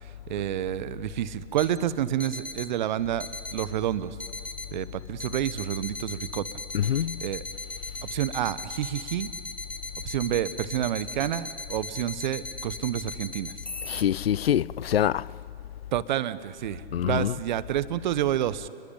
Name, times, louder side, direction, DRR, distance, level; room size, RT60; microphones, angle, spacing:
voice 1, 0.0-3.3 3.5-4.2 4.7-6.4 6.8-7.4 8.1-9.3 10.0-13.5 15.9-18.7, right 11 dB, 45° right, 1.1 m, -29 dB
sound 1, 1.5-1.7 2.2-2.7 3.2-3.7 4.2-4.7 5.2-14.0, left 3 dB, 5° left, 0.8 m, -38 dB
voice 2, 6.7-7.2 13.9-15.2 16.9-17.3, left 10 dB, 70° left, 0.6 m, -25 dB
30.0 x 21.5 x 8.7 m
figure-of-eight pair, 125°, 31 cm